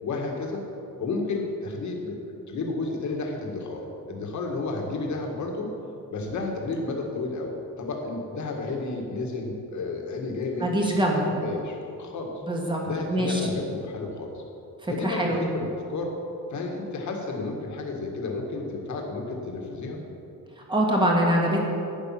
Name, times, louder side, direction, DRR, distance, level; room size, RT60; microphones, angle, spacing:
voice 1, 0.0-0.6 1.0-2.2 2.5-5.7 6.1-10.7 11.2-12.3 12.8-14.4 14.9-16.2 16.5-20.0, left 3 dB, 55° left, 0 dB, 1.9 m, -32 dB
voice 2, 10.6-11.2 12.4-12.8 13.1-13.4 14.8-15.4 20.7-21.7, right 1 dB, 15° right, -1 dB, 1.8 m, -23 dB
11.5 x 8.6 x 5.9 m, 2.7 s
wide cardioid pair, 175°, 34 cm